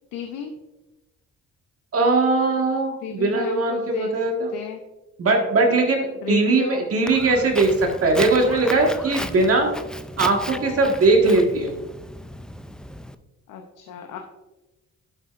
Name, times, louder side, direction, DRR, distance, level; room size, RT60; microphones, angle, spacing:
voice 1, 0.1-0.5 3.0-4.8 6.2-6.8 10.2-10.9 13.5-14.2, left 6 dB, 90° left, 4 dB, 0.8 m, -33 dB
voice 2, 1.9-4.5 5.2-9.7 10.2-11.8, right 3 dB, 50° right, 1 dB, 1.7 m, -20 dB
Walk footsteps, 7.1-13.1, left 1 dB, 5° left, 0.4 m, -35 dB
11.0 x 7.8 x 2.5 m, 1.0 s
cardioid pair, 90°, 30 cm